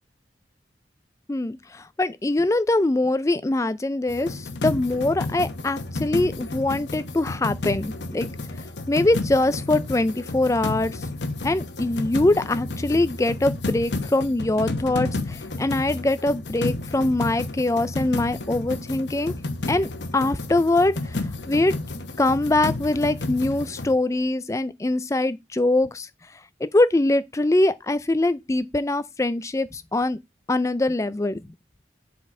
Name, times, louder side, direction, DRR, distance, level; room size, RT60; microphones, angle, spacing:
voice 1, 1.3-8.3 8.9-11.0 11.4-19.3 19.7-21.2 21.5-21.8 22.2-26.1 26.6-30.2 30.5-31.4, left 2 dB, 15° left, 0.4 m, -23 dB
sound 1, 4.1-23.9, left 2 dB, 80° left, 1.0 m, -31 dB
7.4 x 4.0 x 4.3 m
head